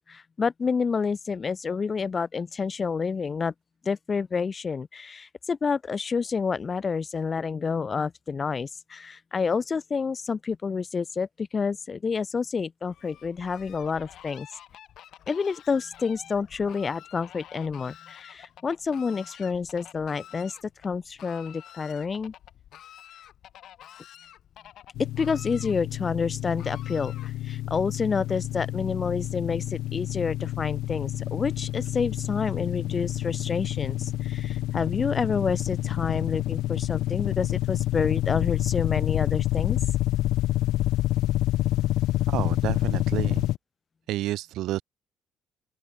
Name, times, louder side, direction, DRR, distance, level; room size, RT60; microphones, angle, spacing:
voice 1, 0.1-3.5 3.8-14.5 15.3-20.6 20.8-22.3 25.0-39.8, left 5 dB, 25° left, 0.9 m, -29 dB
Fowl, 12.9-27.6, left 11 dB, 60° left, 3.8 m, -50 dB
sound 1, 25.0-43.6, left 15 dB, 80° left, 0.8 m, -28 dB
voice 2, 42.3-43.4 44.1-44.8, right 15 dB, 80° right, 0.8 m, -30 dB
open air
cardioid pair, 145°, 0 cm